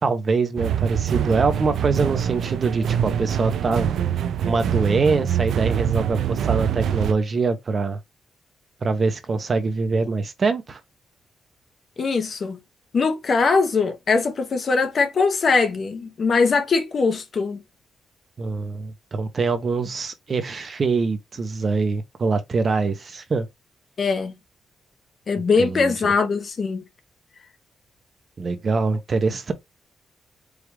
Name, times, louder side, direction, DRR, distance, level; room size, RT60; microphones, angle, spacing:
voice 1, 0.0-3.9 4.5-8.0 8.8-10.8 18.4-23.5 25.6-26.1 28.4-29.5, right 4 dB, 40° right, 0.7 m, -24 dB
sound 1, 0.6-7.1, right 9 dB, 80° right, 0.4 m, -24 dB
voice 2, 12.0-12.6 12.9-17.6 24.0-24.3 25.3-26.8, left 4 dB, 45° left, 0.8 m, -21 dB
4.8 x 2.4 x 3.3 m
wide cardioid pair, 140°, 0 cm